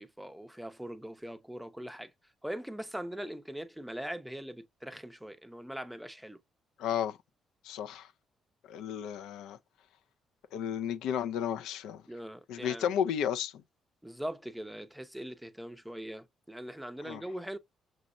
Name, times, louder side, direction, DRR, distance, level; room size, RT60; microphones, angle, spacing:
voice 1, 0.0-2.1 2.4-6.4 12.1-12.9 14.0-17.6, equal, 5° right, 0.5 m, -41 dB
voice 2, 6.8-7.2 7.6-8.1 8.7-9.6 10.5-12.0 12.5-13.5 17.0-17.2, left 9 dB, 90° left, 0.3 m, -33 dB
6.0 x 2.0 x 2.4 m
cardioid pair, 90°, 0 cm